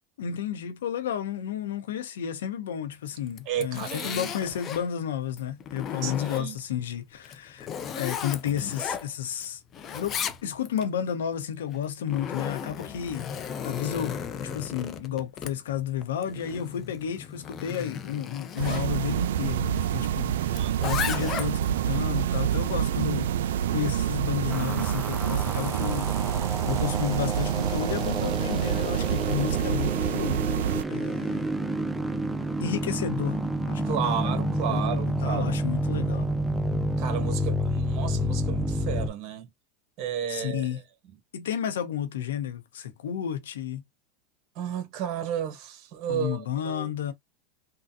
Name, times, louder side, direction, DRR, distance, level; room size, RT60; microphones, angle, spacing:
voice 1, 0.2-7.7 7.9-9.6 9.9-14.2 14.5-26.1 26.6-30.6 30.9-31.5 32.6-34.2 34.7-36.3 40.3-40.8 41.3-43.8 46.1-47.1, left 9 dB, 85° left, 1.0 m, -32 dB
Zipper (clothing), 3.3-4.9 5.4-6.7 7.2-9.5 9.7-10.9 11.7-18.9 20.5-21.7, left 7 dB, 35° left, 0.6 m, -35 dB
voice 2, 3.5-4.3 6.0-6.6 20.5-20.8 33.8-35.6 37.0-39.5 40.0-40.7 44.5-46.9, right 9 dB, 50° right, 1.1 m, -33 dB
sound 1, 18.6-30.8, right 10 dB, 80° right, 0.3 m, -27 dB
sound 2, 24.5-39.1, equal, 5° right, 0.6 m, -29 dB
3.8 x 2.3 x 2.7 m
supercardioid pair, 115°, 0 cm